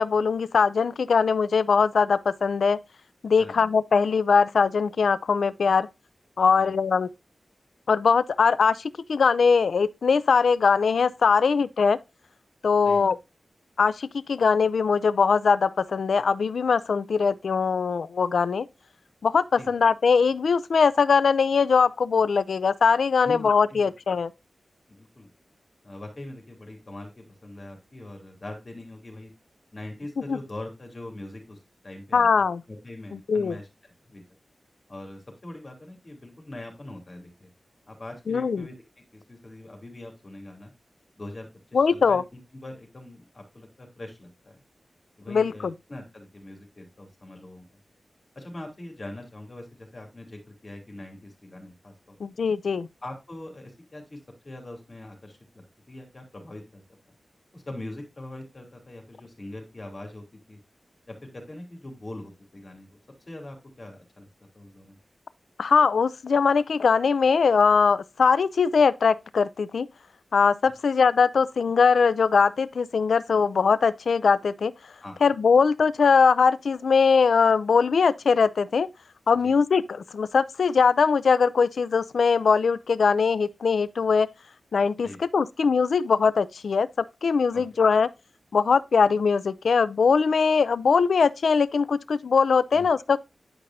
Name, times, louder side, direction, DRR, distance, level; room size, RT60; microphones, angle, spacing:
voice 1, 0.0-2.8 3.2-5.9 6.4-7.1 7.9-12.0 12.6-13.2 13.8-18.7 19.2-24.3 30.3-30.4 32.1-32.6 33.1-33.5 38.3-38.7 41.7-42.2 45.3-45.7 52.2-52.9 65.6-69.9 70.3-74.7 75.2-78.9 79.3-84.3 84.7-86.9 87.2-88.1 88.5-93.2, left 5 dB, 90° left, 0.4 m, -21 dB
voice 2, 3.4-3.7 6.6-6.7 11.4-11.5 12.8-13.1 19.6-19.7 23.2-23.9 24.9-25.3 25.8-29.3 29.7-31.6 31.8-32.3 32.7-33.7 34.1-34.2 34.9-37.5 37.9-38.7 39.1-40.7 41.2-44.6 45.2-47.6 48.3-52.2 53.0-54.2 54.4-55.4 55.9-56.8 57.5-60.6 61.1-63.0 63.3-64.3 64.5-65.0 75.0-75.3 79.4-79.6 85.0-85.2 87.5-87.6 92.7-92.9, left 1 dB, 40° left, 3.0 m, -42 dB
10.0 x 5.2 x 2.8 m
wide cardioid pair, 95°, 0 cm